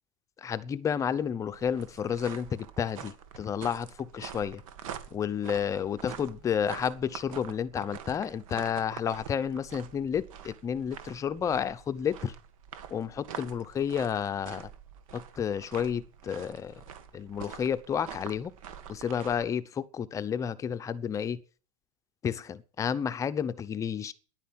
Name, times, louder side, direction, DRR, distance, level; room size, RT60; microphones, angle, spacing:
voice 1, 0.4-4.6 5.1-12.3 12.9-14.7 15.1-16.8 17.1-18.5 18.9-21.4 22.2-24.1, left 8 dB, 20° left, 0.7 m, -31 dB
sound 1, 1.1-19.5, right 8 dB, 75° right, 2.0 m, -46 dB
10.5 x 9.4 x 8.7 m
supercardioid pair, 160°, 18 cm